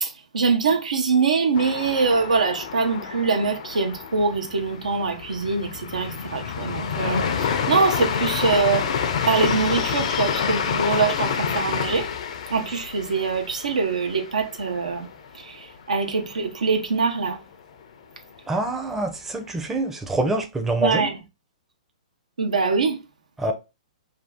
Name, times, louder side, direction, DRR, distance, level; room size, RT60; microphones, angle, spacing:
voice 1, 0.0-8.9 9.3-12.1 12.5-15.1 15.3-17.4 20.8-21.2 22.4-23.0, right 4 dB, 85° right, 0.7 m, -23 dB
sound 1, 1.5-15.3 15.6-15.7 16.1-16.6, left 7 dB, 65° left, 0.5 m, -28 dB
voice 2, 18.5-21.1 23.4-23.5, right 2 dB, 10° right, 0.5 m, -25 dB
2.7 x 2.3 x 3.5 m
hypercardioid pair, 130°, 4 cm